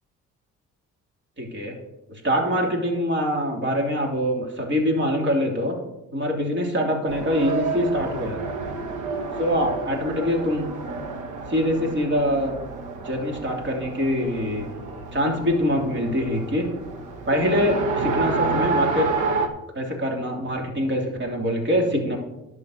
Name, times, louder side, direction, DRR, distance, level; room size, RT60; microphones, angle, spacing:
voice 1, 1.4-1.7 2.2-5.8 6.1-8.4 9.4-10.6 11.5-12.5 13.0-14.7 15.1-16.6 17.3-19.1 19.7-22.2, equal, 40° right, 1 dB, 3.1 m, -24 dB
Race car auto racing, 7.1-19.5, right 4 dB, 75° right, 1.4 m, -30 dB
11.0 x 6.4 x 6.3 m, 0.94 s
cardioid pair, 90°, 30 cm